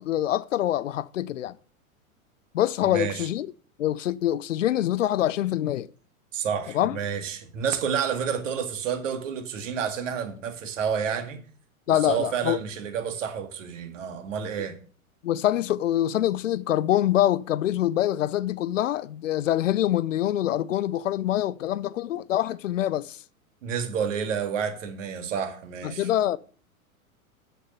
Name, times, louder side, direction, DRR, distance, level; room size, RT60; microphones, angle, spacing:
voice 1, 0.0-1.6 2.5-3.5 3.8-5.9 6.7-7.0 11.9-12.6 15.2-23.2 25.8-26.4, left 12 dB, 60° left, 0.6 m, -25 dB
voice 2, 2.9-3.2 6.3-11.4 11.9-14.7 23.6-26.1, right 7 dB, 60° right, 2.0 m, -29 dB
7.6 x 6.8 x 6.5 m
figure-of-eight pair, 100°, 43 cm